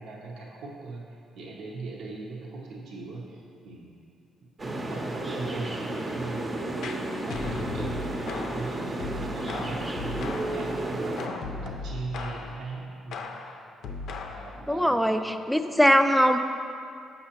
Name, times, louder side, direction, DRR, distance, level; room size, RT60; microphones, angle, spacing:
voice 1, 0.0-3.9 4.9-13.2 14.3-15.3, right 3 dB, 75° right, -2 dB, 0.7 m, -39 dB
sound 1, 4.6-11.3, right 2 dB, 30° right, 0.6 m, -32 dB
sound 2, 6.8-10.7 11.2-12.6 13.1-14.6, left 4 dB, 75° left, 0.4 m, -37 dB
voice 2, 14.7-16.4, equal, ahead, 7 dB, 0.3 m, -21 dB
6.7 x 5.5 x 2.9 m, 2.4 s
cardioid pair, 90°, 0 cm